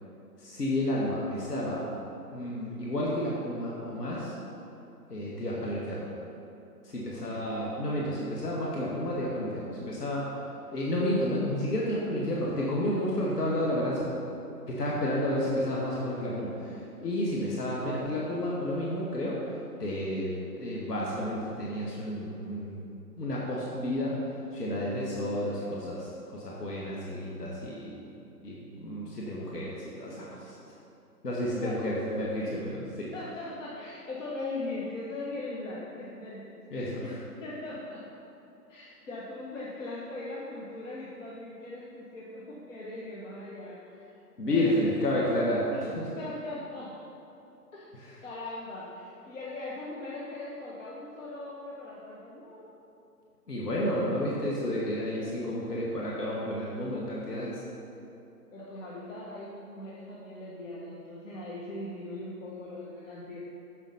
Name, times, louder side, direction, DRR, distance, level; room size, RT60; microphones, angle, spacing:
voice 1, 0.4-1.9 2.3-4.3 5.1-6.1 6.8-10.3 10.7-14.1 14.7-22.9 23.2-24.2 24.5-27.9 28.4-30.6 31.2-33.1 36.7-37.2 44.4-46.1 47.9-48.2 53.5-57.6, left 1 dB, 80° left, -5 dB, 2.0 m, -31 dB
voice 2, 33.1-37.1 37.4-38.0 38.7-44.0 44.4-45.0 46.1-46.9 47.7-47.8 48.2-52.7 58.5-63.4, left 2 dB, 55° left, -6 dB, 1.6 m, -40 dB
7.6 x 7.4 x 5.6 m, 2.7 s
hypercardioid pair, 165°, 47 cm